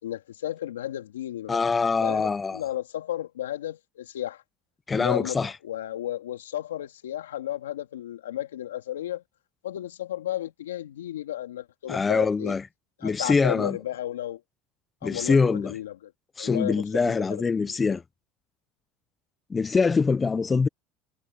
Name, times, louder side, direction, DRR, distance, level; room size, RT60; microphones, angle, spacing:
voice 1, 0.0-1.6 2.0-4.4 4.9-9.2 9.6-12.5 13.0-14.4 15.0-16.1 16.4-17.4 17.7-17.9, left 12 dB, 90° left, 3.0 m, -33 dB
voice 2, 1.5-2.6 4.9-5.5 11.9-12.6 13.0-13.8 15.0-15.7 16.4-18.0 19.5-20.7, left 4 dB, 25° left, 1.1 m, -24 dB
hypercardioid pair, 80°, 0 cm